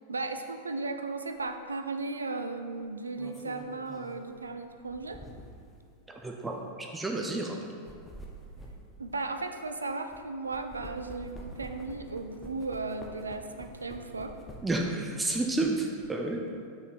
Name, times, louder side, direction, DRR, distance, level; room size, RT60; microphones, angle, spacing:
voice 1, 0.0-5.2 9.0-14.4, right 3 dB, 75° right, 7 dB, 0.4 m, -36 dB
sound 1, 1.4-1.6 2.8-5.7 6.4-6.5 7.6-10.2 10.5-14.9 15.3-16.1, equal, 10° left, 0.9 m, -48 dB
voice 2, 6.1-7.6 14.6-16.4, right 2 dB, 10° right, 1 dB, 0.6 m, -31 dB
6.0 x 6.0 x 4.4 m, 2.2 s
figure-of-eight pair, 90°, 0 cm